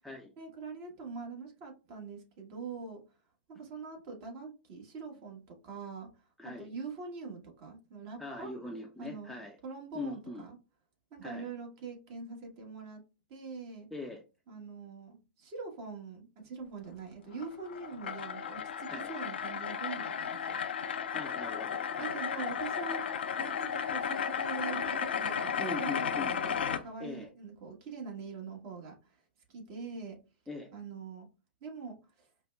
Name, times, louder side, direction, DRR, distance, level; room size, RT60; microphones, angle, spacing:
voice 1, 0.4-3.0 3.5-6.1 6.4-8.5 9.0-9.4 9.6-10.6 11.1-13.0 13.3-13.9 14.5-20.6 22.0-23.1 23.3-29.2 29.5-30.2 30.7-31.3 31.6-32.3, right 4 dB, 45° right, 1.3 m, -43 dB
voice 2, 8.2-9.6 9.9-10.4 11.2-11.5 13.9-14.2 18.9-19.1 21.1-22.2 25.6-26.6 27.0-27.3 30.5-30.7, left 2 dB, ahead, 0.6 m, -41 dB
sound 1, 17.3-26.8, left 7 dB, 75° left, 0.4 m, -34 dB
5.1 x 2.1 x 2.3 m
figure-of-eight pair, 105°, 6 cm